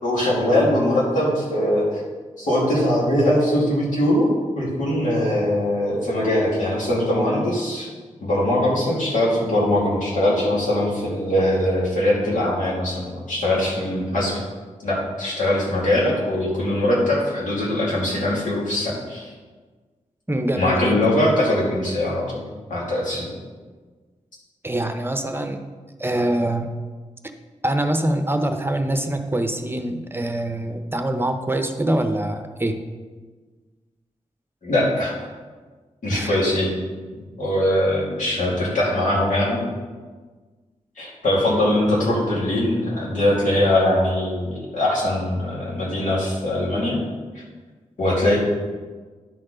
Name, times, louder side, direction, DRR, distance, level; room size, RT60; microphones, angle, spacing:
voice 1, 0.0-1.8 2.4-7.9 8.2-14.4 14.8-19.3 20.6-22.4 22.7-23.3 34.6-35.1 36.0-36.8 37.4-39.6 41.0-47.0 48.0-48.4, left 1 dB, 90° left, -6 dB, 2.6 m, -21 dB
voice 2, 20.3-21.1 24.6-25.6 26.0-26.7 27.6-32.8 36.1-36.4, right 1 dB, 15° right, 6 dB, 0.7 m, -24 dB
10.5 x 4.3 x 5.0 m, 1.4 s
cardioid pair, 60°, 13 cm